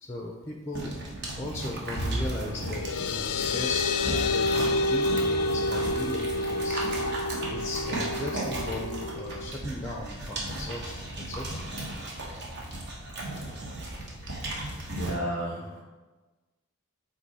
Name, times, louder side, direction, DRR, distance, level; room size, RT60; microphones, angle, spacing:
voice 1, 0.0-6.9 7.5-11.7 14.0-15.0, left 2 dB, 10° left, 1 dB, 0.4 m, -38 dB
sound 1, 0.7-15.2, right 1 dB, 50° right, 1.1 m, -35 dB
sound 2, 2.4-9.5, left 2 dB, 80° left, 0.3 m, -29 dB
voice 2, 14.9-15.8, right 1 dB, 70° right, -8 dB, 1.4 m, -32 dB
7.7 x 3.0 x 4.1 m, 1.2 s
head